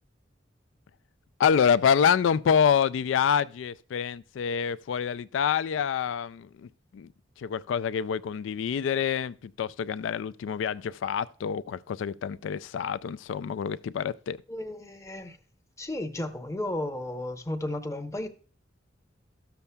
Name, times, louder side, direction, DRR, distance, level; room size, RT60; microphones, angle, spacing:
voice 1, 1.4-7.1 7.4-14.4, left 7 dB, 85° left, 0.3 m, -27 dB
voice 2, 14.5-15.4 15.8-18.3, left 1 dB, 15° left, 0.7 m, -33 dB
13.0 x 6.9 x 2.2 m
head